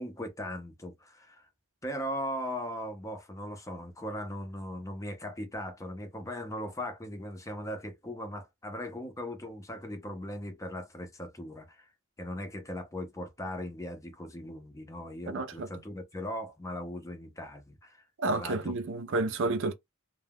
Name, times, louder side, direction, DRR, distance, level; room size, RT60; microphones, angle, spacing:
voice 1, 0.0-1.5 1.8-11.9 12.2-18.1 18.3-18.8 19.5-19.6, left 1 dB, 15° left, 0.5 m, -39 dB
voice 2, 15.3-15.7 18.2-19.7, right 2 dB, 60° right, 0.5 m, -30 dB
2.2 x 2.2 x 3.3 m
head